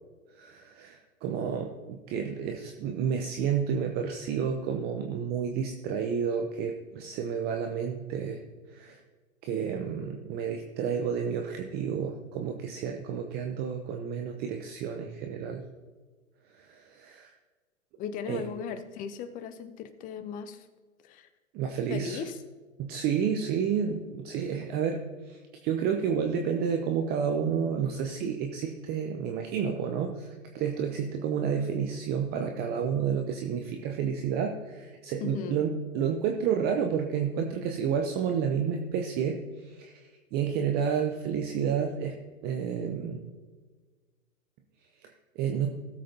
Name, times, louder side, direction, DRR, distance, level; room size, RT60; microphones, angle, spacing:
voice 1, 0.3-8.4 8.7-9.0 9.4-15.6 16.5-17.3 18.3-18.4 21.5-22.2 22.8-40.0 40.3-42.2 42.4-43.2 45.4-45.7, right 7 dB, 25° right, 4 dB, 0.7 m, -30 dB
voice 2, 18.0-20.6 21.0-21.3 21.9-22.4 35.2-35.6 42.8-42.9, left 7 dB, 20° left, 11 dB, 0.6 m, -37 dB
17.0 x 7.5 x 2.8 m, 1.4 s
hypercardioid pair, 115°, 41 cm